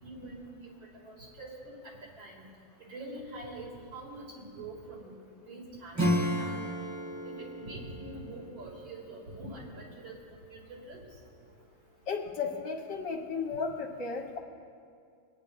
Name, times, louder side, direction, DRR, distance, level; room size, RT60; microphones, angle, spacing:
voice 1, 0.0-0.5 1.0-1.8 2.2-2.4 2.9-3.7 3.9-5.1 5.5-6.8 7.2-10.1 10.5-11.0, right 2 dB, 65° right, -5 dB, 3.5 m, -44 dB
Acoustic guitar / Strum, 5.9-10.2, equal, 10° right, 0.8 m, -34 dB
voice 2, 12.1-14.4, left 5 dB, 60° left, 1 dB, 1.7 m, -34 dB
28.0 x 9.9 x 2.6 m, 2.3 s
omnidirectional pair, 2.3 m